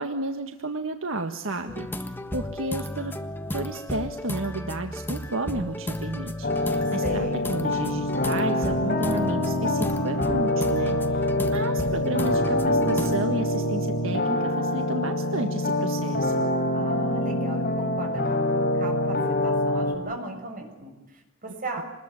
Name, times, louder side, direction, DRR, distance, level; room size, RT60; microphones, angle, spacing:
voice 1, 0.0-3.1 3.5-16.5, right 2 dB, 70° right, 5 dB, 1.7 m, -32 dB
sound 1, 1.7-13.2, left 1 dB, 10° left, 1.4 m, -34 dB
sound 2, 6.4-20.0, left 1 dB, 45° left, 5.1 m, -25 dB
voice 2, 7.0-7.5 16.7-21.8, right 2 dB, 40° right, 3 dB, 7.0 m, -37 dB
27.0 x 21.0 x 9.8 m, 1.1 s
head